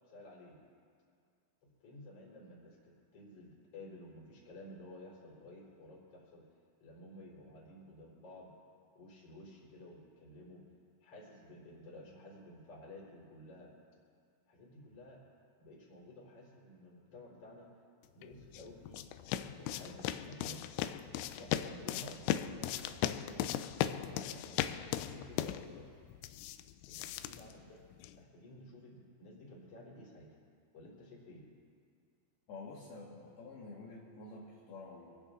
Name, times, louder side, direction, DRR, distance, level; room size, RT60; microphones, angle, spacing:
voice 1, 0.1-0.6 1.8-6.5 6.8-8.5 8.9-10.6 11.0-13.7 14.5-15.2 15.6-17.7 18.1-19.0 19.5-20.6 21.3-23.4 23.9-25.9 26.9-27.8 28.1-30.3 30.7-31.4, left 1 dB, 35° left, -4 dB, 3.9 m, -53 dB
sound 1, 18.2-28.2, left 12 dB, 85° left, 2.8 m, -38 dB
voice 2, 32.5-35.2, left 3 dB, 65° left, -4 dB, 3.0 m, -49 dB
25.5 x 16.0 x 2.5 m, 2.2 s
omnidirectional pair, 5.6 m